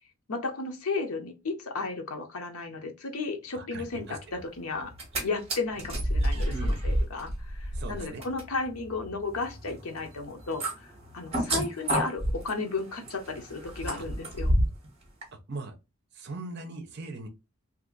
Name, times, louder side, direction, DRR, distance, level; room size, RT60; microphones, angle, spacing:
voice 1, 0.3-4.9 5.2-10.9 11.1-14.5, left 3 dB, 85° left, 0.7 m, -34 dB
voice 2, 3.5-4.2 6.5-6.8 7.7-8.2 14.0-14.1 15.5-15.7 16.1-17.3, right 2 dB, 50° right, 0.7 m, -39 dB
sound 1, 4.8-5.2 5.5-14.9 15.2-15.3, right 1 dB, 30° right, 1.2 m, -30 dB
2.8 x 2.5 x 3.8 m
head